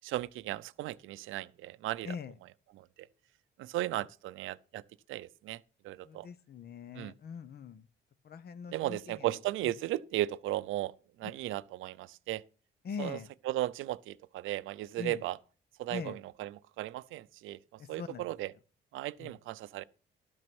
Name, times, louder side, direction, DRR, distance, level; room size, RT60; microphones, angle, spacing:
voice 1, 0.0-2.2 2.7-3.1 3.6-4.8 5.1-6.3 6.9-7.1 8.7-12.4 13.0-13.2 13.4-15.4 15.8-17.6 17.9-18.5 18.9-19.8, right 15 dB, 85° right, 0.5 m, -36 dB
voice 2, 6.1-7.8 8.2-9.3 12.8-13.3 15.0-15.2 15.9-16.2 18.0-18.2 19.2-19.3, left 6 dB, 55° left, 0.7 m, -42 dB
12.0 x 6.2 x 6.1 m
cardioid pair, 90°, 20 cm